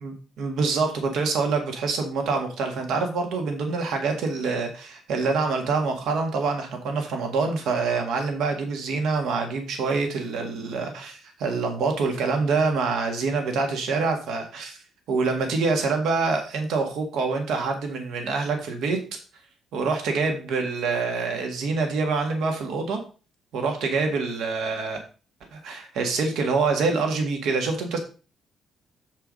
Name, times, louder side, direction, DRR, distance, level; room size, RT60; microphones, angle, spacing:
voice 1, 0.0-14.8 15.1-19.0 19.7-23.0 23.5-25.0 25.5-28.0, right 4 dB, 80° right, 4 dB, 1.6 m, -26 dB
7.8 x 4.5 x 5.1 m, 0.35 s
cardioid pair, 160°, 0 cm